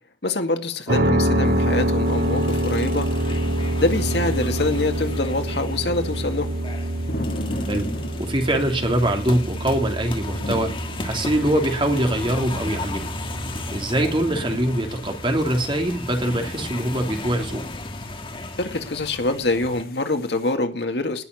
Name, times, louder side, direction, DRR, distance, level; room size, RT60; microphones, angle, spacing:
voice 1, 0.2-3.4 3.8-6.5 18.6-21.2, left 2 dB, 70° left, 7 dB, 2.2 m, -25 dB
sound 1, 0.9-16.7, right 1 dB, 65° right, 2.3 m, -27 dB
sound 2, 1.4-20.5, left 1 dB, 55° left, 1.9 m, -40 dB
sound 3, 2.1-19.8, left 2 dB, 30° left, 1.7 m, -35 dB
voice 2, 8.2-10.7 11.0-13.1 13.7-17.6, right 1 dB, 30° right, 4 dB, 2.8 m, -23 dB
19.0 x 6.9 x 9.6 m, 0.43 s
head